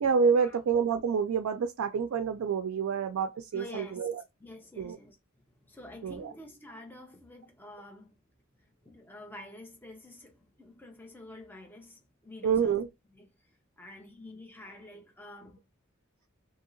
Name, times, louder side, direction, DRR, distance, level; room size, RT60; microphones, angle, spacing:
voice 1, 0.0-4.2 4.8-5.0 6.0-6.3 12.4-12.9, right 6 dB, 80° right, 0.3 m, -28 dB
voice 2, 3.5-4.1 4.4-5.2 5.6-8.2 8.8-12.8 13.1-13.3 13.8-15.6, left 1 dB, 10° left, 0.7 m, -48 dB
2.8 x 2.7 x 2.6 m
head